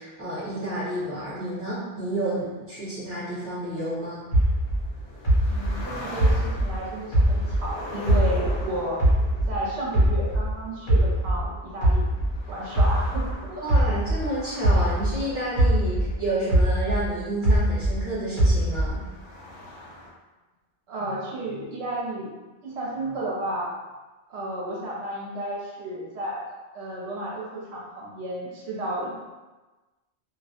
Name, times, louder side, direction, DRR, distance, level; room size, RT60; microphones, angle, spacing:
voice 1, 0.0-4.2 13.6-19.0, right 1 dB, 15° right, -10 dB, 0.9 m, -30 dB
sound 1, 2.4-20.1, left 1 dB, 75° left, 0.8 m, -42 dB
sound 2, 4.3-7.7 8.1-10.5 10.9-15.2 15.6-18.0 18.4-19.1, right 1 dB, 45° left, 1.0 m, -21 dB
voice 2, 5.5-9.0 9.5-12.1 12.5-13.2 13.5-13.7 20.9-22.4 22.6-23.7 24.3-29.2, right 1 dB, 75° right, -5 dB, 0.8 m, -32 dB
2.2 x 2.0 x 2.7 m, 1.2 s
omnidirectional pair, 1.1 m